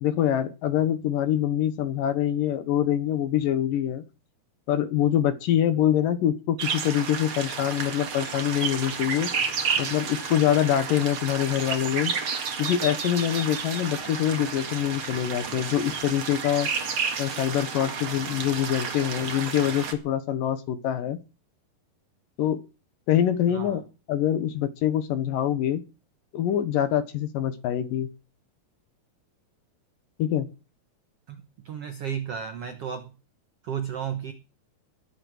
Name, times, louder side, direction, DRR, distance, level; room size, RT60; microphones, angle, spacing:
voice 1, 0.0-4.0 4.7-9.3 9.8-12.1 12.6-16.7 17.2-21.2 22.4-22.6 23.1-23.8 24.1-25.8 26.3-28.1 30.2-30.5, left 10 dB, 70° left, 12 dB, 2.4 m, -25 dB
sound 1, 6.6-19.9, right 5 dB, 40° right, 2.2 m, -31 dB
voice 2, 23.5-23.8 31.3-31.4 31.6-33.1 33.6-34.3, right 8 dB, 70° right, 8 dB, 1.4 m, -33 dB
20.0 x 7.8 x 6.4 m, 0.33 s
omnidirectional pair, 4.7 m